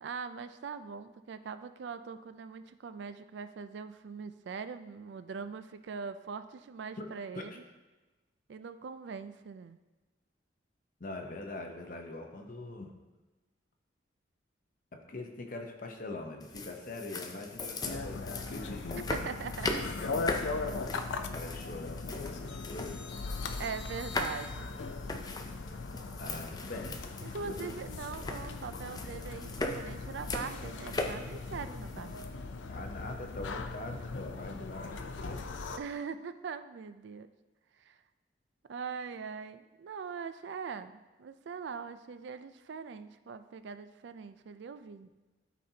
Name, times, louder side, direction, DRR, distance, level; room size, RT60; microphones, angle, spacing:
voice 1, 0.0-7.6 8.5-9.8 19.1-20.4 23.6-24.7 27.2-32.2 35.8-37.3 37.8-38.0 38.7-45.1, right 5 dB, 70° right, 11 dB, 0.4 m, -42 dB
voice 2, 11.0-13.0 14.9-19.1 21.2-23.0 26.2-27.0 27.4-27.7 32.7-35.4, left 2 dB, 50° left, 3 dB, 0.8 m, -43 dB
sound 1, 16.4-32.2, left 2 dB, 20° left, 0.5 m, -40 dB
sound 2, 17.9-35.8, left 3 dB, 90° left, 0.5 m, -39 dB
12.5 x 4.2 x 2.8 m, 1.2 s
head